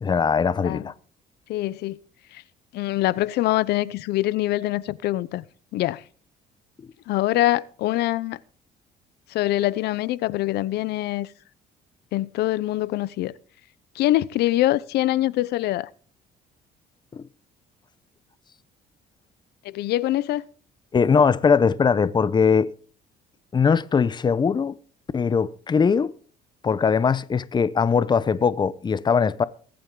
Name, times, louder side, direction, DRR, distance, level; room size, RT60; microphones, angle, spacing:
voice 1, 0.0-0.9 17.1-17.2 20.9-22.7 23.5-24.8 25.1-26.1 26.6-29.4, left 6 dB, 25° left, 0.7 m, -20 dB
voice 2, 1.5-2.0 2.3-2.4 2.7-5.4 5.7-6.0 7.1-8.4 9.3-11.3 12.1-13.3 13.9-15.9 19.6-20.4, left 15 dB, 75° left, 0.7 m, -24 dB
22.0 x 8.9 x 3.8 m
cardioid pair, 110°, 17 cm